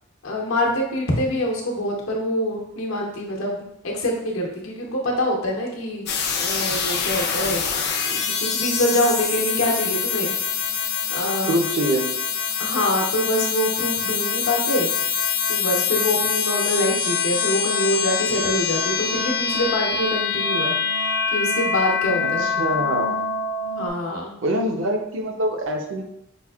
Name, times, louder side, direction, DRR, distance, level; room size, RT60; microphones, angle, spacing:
voice 1, 0.2-6.1 6.4-7.6 8.1-10.3 11.1-11.5 12.6-14.9 15.5-20.7 21.3-22.5 23.8-24.3, left 1 dB, 90° left, -1 dB, 0.9 m, -25 dB
sound 1, 6.1-23.9, left 6 dB, 55° left, 0.5 m, -24 dB
voice 2, 11.5-12.0 22.2-23.2 24.4-26.0, right 1 dB, 65° right, 3 dB, 0.6 m, -24 dB
5.1 x 2.5 x 2.3 m, 0.77 s
head